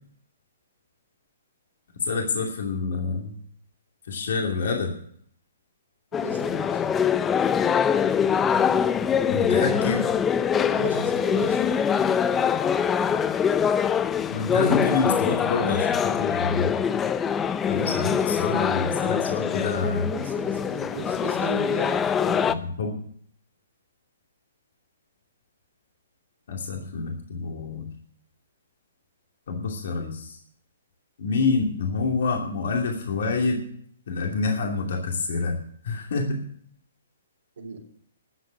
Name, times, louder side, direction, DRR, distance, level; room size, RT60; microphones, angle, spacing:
voice 1, 2.0-3.3 4.1-4.9 9.3-10.0 14.3-16.7 17.7-20.1 22.5-23.0 26.5-27.9 29.5-30.4 31.2-33.6 34.1-35.6 35.8-36.4, left 4 dB, 65° left, 1 dB, 2.6 m, -27 dB
sound 1, 6.1-22.5, left 7 dB, 15° left, 0.6 m, -24 dB
voice 2, 6.2-6.8 10.7-11.6 20.1-22.5 37.6-37.8, right 3 dB, 75° right, -2 dB, 3.5 m, -35 dB
13.5 x 7.9 x 7.7 m, 0.62 s
hypercardioid pair, 130°, 0 cm